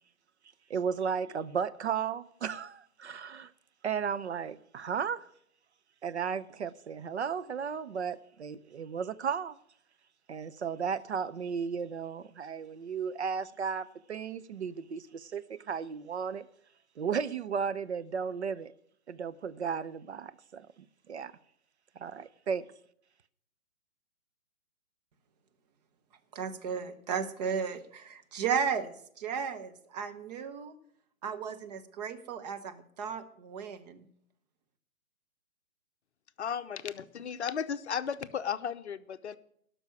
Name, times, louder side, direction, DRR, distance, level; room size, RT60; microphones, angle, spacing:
voice 1, 0.7-3.5 3.8-5.3 6.0-9.6 10.3-16.5 17.0-18.7 19.1-20.7 21.1-21.3 22.0-22.7, right 6 dB, 55° right, 0.6 m, -34 dB
voice 2, 26.3-30.7 31.2-34.1, right 6 dB, 30° right, 0.9 m, -35 dB
voice 3, 36.4-39.4, left 7 dB, 55° left, 0.7 m, -35 dB
12.5 x 6.2 x 9.2 m
figure-of-eight pair, 125°, 42 cm